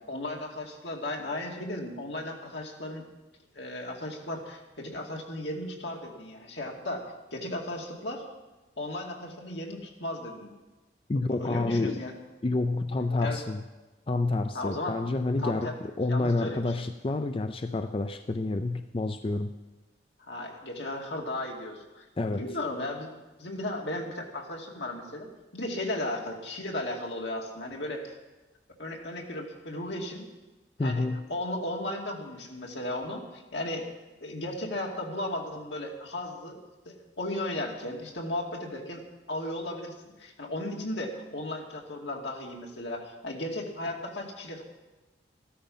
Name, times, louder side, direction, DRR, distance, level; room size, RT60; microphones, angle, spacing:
voice 1, 0.1-3.1 3.5-7.0 7.3-8.2 8.8-10.5 11.4-12.2 13.2-13.4 14.5-15.0 15.4-15.7 16.1-16.8 20.3-23.1 23.4-25.3 25.5-28.1 28.8-30.2 30.8-33.8 34.2-36.6 36.9-39.0 39.3-44.6, left 1 dB, 80° left, 0 dB, 2.4 m, -35 dB
voice 2, 11.1-12.0 12.4-13.6 14.1-19.5 22.2-22.5 30.8-31.2, left 2 dB, 30° left, 9 dB, 0.4 m, -29 dB
14.5 x 13.0 x 5.5 m, 1.2 s
head